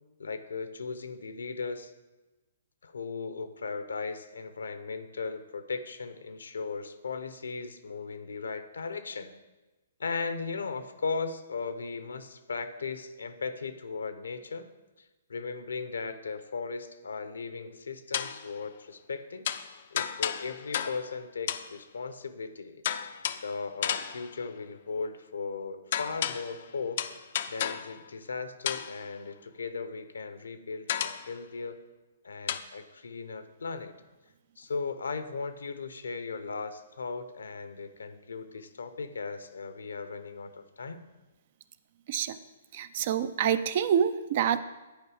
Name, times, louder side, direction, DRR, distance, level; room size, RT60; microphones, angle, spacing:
voice 1, 0.2-1.9 2.8-9.3 10.0-14.7 15.3-19.5 19.9-22.8 23.4-27.0 27.5-31.8 32.2-33.9 34.6-41.0, left 4 dB, 75° left, 11 dB, 0.8 m, -37 dB
sound 1, 18.1-18.5 19.4-21.2 21.5-21.8 22.8-23.5 23.8-24.4 25.9-26.6 27.0-28.0 28.7-29.1 30.9-31.3 32.5-32.6, left 9 dB, 55° left, 0.4 m, -33 dB
voice 2, 42.7-44.6, right 9 dB, 45° right, 14 dB, 0.4 m, -27 dB
10.5 x 4.7 x 4.9 m, 1.1 s
figure-of-eight pair, 125°, 0 cm